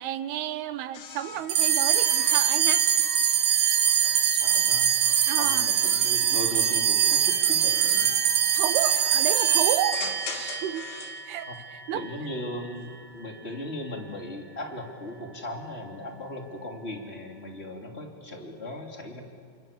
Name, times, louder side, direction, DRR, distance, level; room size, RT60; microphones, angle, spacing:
voice 1, 0.0-2.9 5.3-5.7 8.5-10.9 11.3-12.1, right 11 dB, 85° right, 12 dB, 3.0 m, -31 dB
sound 1, 0.9-4.2 5.0-11.2 12.7-13.2, left 6 dB, 90° left, 4.0 m, -43 dB
sound 2, 1.5-12.1, right 9 dB, 70° right, 2.8 m, -23 dB
voice 2, 4.0-4.9 5.4-8.1 8.8-8.9 11.5-11.6 11.9-19.2, left 1 dB, 20° left, 2 dB, 2.6 m, -37 dB
29.5 x 26.5 x 7.3 m, 2.1 s
omnidirectional pair, 4.5 m